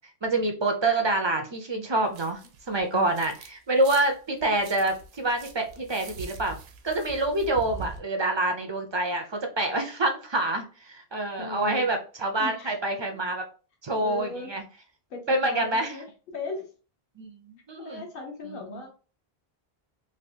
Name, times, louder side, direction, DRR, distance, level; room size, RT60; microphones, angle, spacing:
voice 1, 0.2-2.4 2.7-6.6 6.8-13.4 13.8-14.6 15.3-15.9 17.2-18.0 18.5-18.6, right 2 dB, 45° right, 4 dB, 0.4 m, -27 dB
sound 1, 2.1-3.5 3.8-8.0, right 4 dB, 80° right, 0.8 m, -43 dB
voice 2, 11.4-11.9 12.4-12.7 13.1-13.2 14.0-14.5 15.1-16.7 17.8-18.9, left 3 dB, 60° left, 1 dB, 1.1 m, -37 dB
3.3 x 2.6 x 2.7 m, 0.35 s
omnidirectional pair, 1.0 m